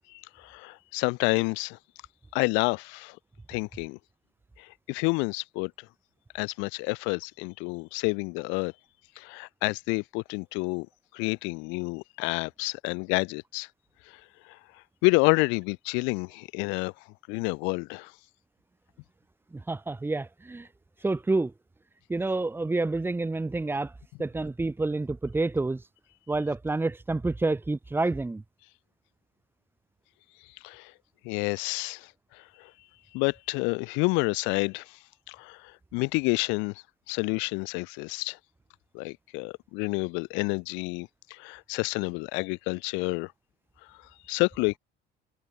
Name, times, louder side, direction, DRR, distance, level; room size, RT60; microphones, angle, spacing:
voice 1, 0.1-1.8 2.3-3.2 3.5-4.0 4.6-5.7 6.3-8.7 9.2-10.9 11.1-13.7 15.0-16.9 17.3-18.1 30.6-30.9 31.2-32.1 32.6-32.7 33.1-35.0 35.3-36.7 37.1-38.4 38.9-43.3 44.3-44.8, left 30 dB, 90° left, 1.3 m, -29 dB
voice 2, 19.5-20.7 21.0-21.5 22.1-25.9 26.3-28.4, right 2 dB, 10° right, 2.2 m, -28 dB
cardioid pair, 130°, 19 cm